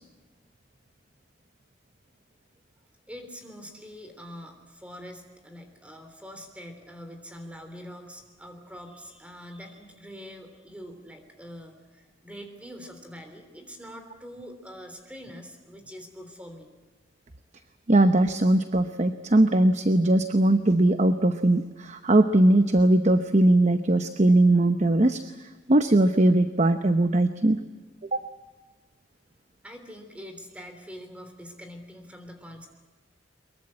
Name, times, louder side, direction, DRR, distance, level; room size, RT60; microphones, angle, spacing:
voice 1, 3.1-16.7 29.6-32.7, equal, 5° right, 6 dB, 3.3 m, -44 dB
voice 2, 17.9-25.2 25.7-27.6 28.1-28.2, right 1 dB, 35° right, 9 dB, 0.9 m, -20 dB
23.5 x 22.0 x 8.7 m, 1.3 s
head